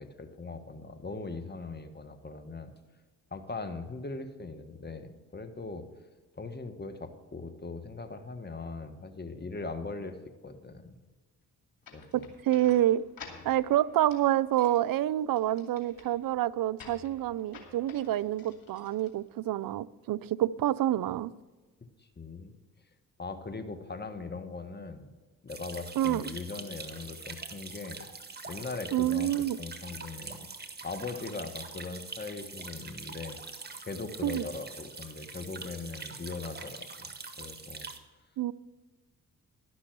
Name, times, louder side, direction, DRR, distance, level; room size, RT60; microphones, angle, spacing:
voice 1, 0.0-2.7 3.3-5.9 6.3-10.2 10.4-11.0 11.9-12.3 22.0-22.5 23.2-25.1 25.4-28.1 28.5-29.3 29.6-30.5 30.8-33.4 33.8-37.1 37.4-37.9, left 3 dB, 25° left, 8 dB, 1.5 m, -40 dB
sound 1, 11.8-19.7, left 5 dB, 60° left, 2.6 m, -52 dB
voice 2, 12.1-13.0 13.4-21.3 26.0-26.2 28.9-29.6 34.2-34.4 38.4-38.5, right 13 dB, 55° right, 18 dB, 0.5 m, -27 dB
sound 2, 25.5-38.0, right 4 dB, 25° right, 1.6 m, -44 dB
11.5 x 6.2 x 7.8 m, 1.3 s
hypercardioid pair, 45°, 40 cm